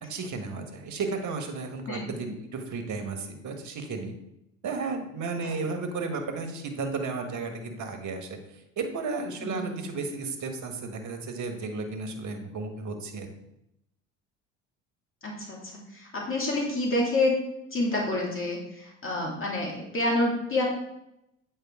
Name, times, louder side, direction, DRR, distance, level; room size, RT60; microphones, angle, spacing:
voice 1, 0.0-4.1 4.6-8.4 8.8-13.3, right 4 dB, 50° right, 5 dB, 1.6 m, -33 dB
voice 2, 5.4-5.8 9.4-9.9 15.2-17.3 17.7-20.6, left 2 dB, 35° left, -2 dB, 2.4 m, -28 dB
8.4 x 5.2 x 3.7 m, 0.83 s
hypercardioid pair, 65°, 38 cm